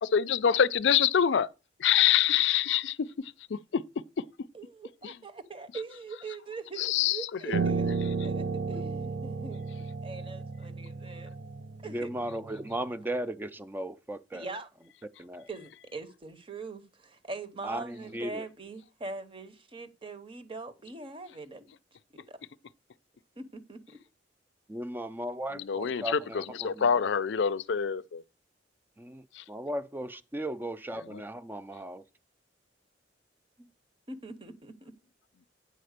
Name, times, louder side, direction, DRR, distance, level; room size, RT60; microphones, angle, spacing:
voice 1, 0.0-1.5 1.8-3.0 3.5-3.8 5.0-5.2 6.8-7.6 25.5-28.2 29.3-29.4 31.1-31.2, left 8 dB, 70° left, 0.4 m, -26 dB
voice 2, 4.5-9.6 10.0-11.3 11.8-12.1 14.3-14.7 15.5-21.7 22.1-22.4 23.4-24.0 25.8-25.9 33.6-33.7 34.1-34.9, right 3 dB, 30° right, 0.9 m, -42 dB
Piano, 7.5-12.8, right 4 dB, 65° right, 0.7 m, -33 dB
voice 3, 11.8-14.5 15.2-15.5 17.6-18.5 24.7-27.0 29.0-32.0, right 1 dB, 10° right, 0.4 m, -36 dB
9.2 x 4.3 x 6.5 m
head